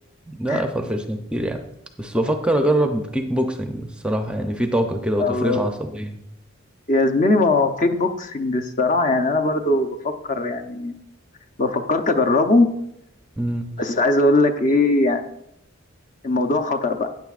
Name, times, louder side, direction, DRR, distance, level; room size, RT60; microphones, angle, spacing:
voice 1, 0.3-1.6 2.0-6.2 13.4-13.7, right 1 dB, 5° right, 5 dB, 0.6 m, -24 dB
voice 2, 5.2-5.7 6.9-10.9 11.6-12.7 13.8-15.3 16.2-17.1, left 2 dB, 40° left, 5 dB, 0.7 m, -20 dB
13.0 x 9.3 x 2.5 m, 0.77 s
head